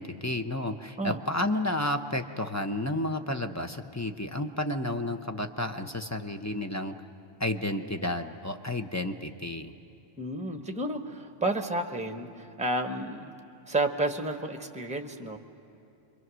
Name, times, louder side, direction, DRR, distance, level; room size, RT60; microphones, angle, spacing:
voice 1, 0.0-6.9 7.4-9.7, left 1 dB, 20° left, 6 dB, 0.6 m, -31 dB
voice 2, 10.2-13.3 13.7-15.4, right 2 dB, 5° right, 6 dB, 1.0 m, -31 dB
27.0 x 23.0 x 6.2 m, 2.7 s
omnidirectional pair, 1.1 m